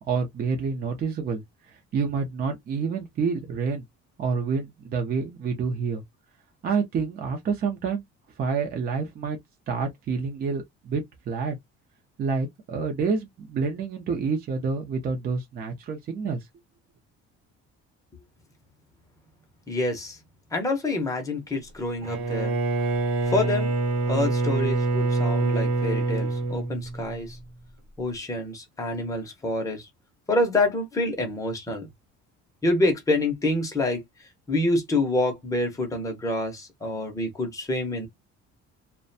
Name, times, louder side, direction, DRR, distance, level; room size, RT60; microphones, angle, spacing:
voice 1, 0.1-1.4 1.7-3.8 4.2-6.0 6.6-8.0 8.4-9.4 9.7-11.6 12.2-16.4, right 5 dB, 30° right, 0.5 m, -28 dB
voice 2, 19.7-20.2 20.5-22.6 23.3-23.7 24.1-27.3 28.0-29.8 30.3-31.9 32.6-34.0 34.5-38.1, left 2 dB, 10° left, 0.6 m, -27 dB
Bowed string instrument, 22.0-27.4, right 3 dB, 80° right, 0.9 m, -25 dB
2.4 x 2.1 x 2.5 m
cardioid pair, 175°, 29 cm